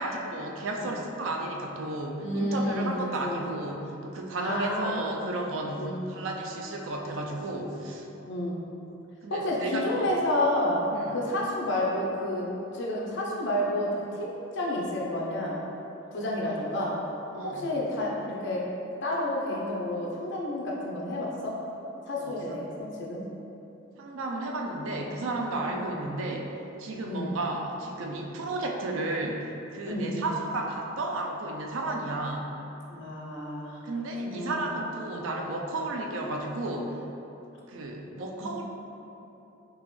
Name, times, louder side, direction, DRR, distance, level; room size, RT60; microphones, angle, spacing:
voice 1, 0.0-8.1 9.2-10.1 10.9-11.1 17.3-17.7 22.2-22.4 24.0-26.5 26.8-32.5 33.8-37.0 37.7-38.6, right 2 dB, 75° right, 1 dB, 0.4 m, -33 dB
voice 2, 2.2-2.9 3.2-3.5 4.3-5.3 5.8-6.3 8.2-8.6 9.3-10.8 11.1-15.6 16.1-17.0 17.4-18.6 19.0-21.5 22.1-23.2 25.7-26.0 27.0-27.4 29.8-30.3 32.9-33.8 34.2-34.7 35.1-35.3, left 1 dB, 65° left, -4 dB, 0.7 m, -30 dB
3.8 x 2.9 x 3.1 m, 3.0 s
head